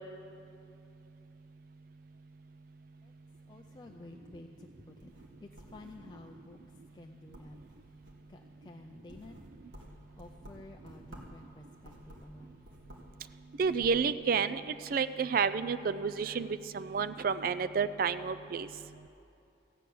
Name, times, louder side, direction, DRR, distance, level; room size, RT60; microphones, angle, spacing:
voice 1, 3.5-5.1 5.4-6.6 6.9-7.6 8.3-9.4 10.2-12.5, left 2 dB, 25° left, 1 dB, 0.4 m, -51 dB
sound 1, 5.0-6.3 6.8-7.0 7.3-8.3 8.8-11.4 11.8-13.2 13.5-14.0, equal, 85° right, 1.7 m, -53 dB
voice 2, 13.6-18.7, right 5 dB, 50° right, 14 dB, 0.4 m, -30 dB
15.0 x 6.2 x 8.4 m, 2.7 s
head